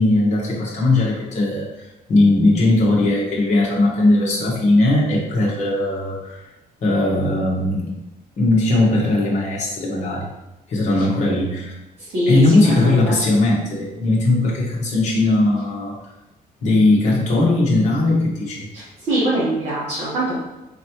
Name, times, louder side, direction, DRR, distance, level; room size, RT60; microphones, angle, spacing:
voice 1, 0.0-6.5 6.8-8.0 8.4-10.3 10.7-11.7 12.3-16.0 16.6-18.7, left 2 dB, 50° left, -4 dB, 1.2 m, -18 dB
voice 2, 12.7-13.2 18.7-20.4, right 1 dB, 45° right, -8 dB, 1.2 m, -23 dB
4.3 x 3.1 x 2.9 m, 1.0 s
cardioid pair, 165°, 15 cm